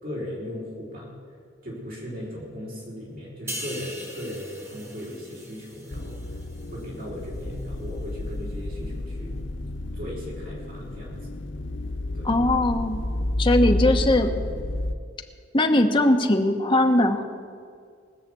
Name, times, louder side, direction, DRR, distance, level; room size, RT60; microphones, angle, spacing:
voice 1, 0.0-1.1 1.6-6.3 6.7-9.4 9.9-11.4 12.1-12.3, left 1 dB, 50° right, -4 dB, 5.0 m, -37 dB
sound 1, 3.5-7.0 7.4-7.6, equal, 15° right, 1.6 m, -40 dB
sound 2, 5.9-15.0, left 1 dB, 90° left, 0.8 m, -30 dB
voice 2, 12.2-13.0 13.4-14.4 15.5-17.2, left 1 dB, 30° left, 4 dB, 1.1 m, -20 dB
20.0 x 6.7 x 8.3 m, 2.1 s
head